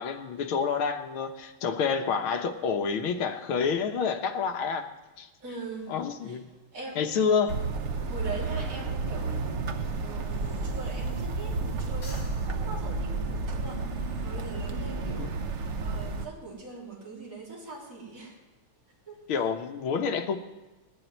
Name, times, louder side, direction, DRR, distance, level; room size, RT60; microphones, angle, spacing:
voice 1, 0.0-4.9 5.2-5.3 5.9-6.4 7.0-7.6 15.2-15.3 19.3-20.4, left 6 dB, 75° left, 6 dB, 1.9 m, -28 dB
voice 2, 5.4-6.4 6.7-7.3 8.0-18.4 19.1-19.5, right 3 dB, 35° right, -4 dB, 3.9 m, -42 dB
sound 1, 7.5-16.3, right 3 dB, 55° right, 0.8 m, -31 dB
Breathing, 10.2-11.6 11.9-13.9, left 1 dB, 50° left, 3.2 m, -51 dB
18.5 x 7.7 x 9.4 m, 1.1 s
omnidirectional pair, 2.4 m